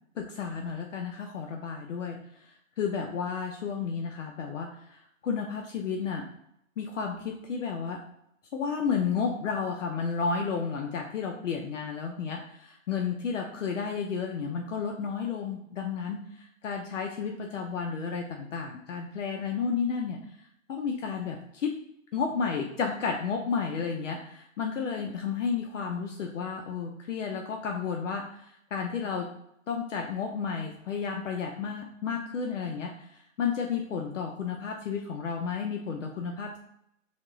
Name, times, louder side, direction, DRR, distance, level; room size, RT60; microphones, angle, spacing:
voice 1, 0.2-2.2 2.8-6.2 6.8-8.0 8.5-20.2 20.7-21.7 22.1-29.3 29.7-36.6, left 6 dB, 65° left, 2 dB, 0.5 m, -32 dB
3.5 x 2.3 x 3.7 m, 0.75 s
hypercardioid pair, 170°, 39 cm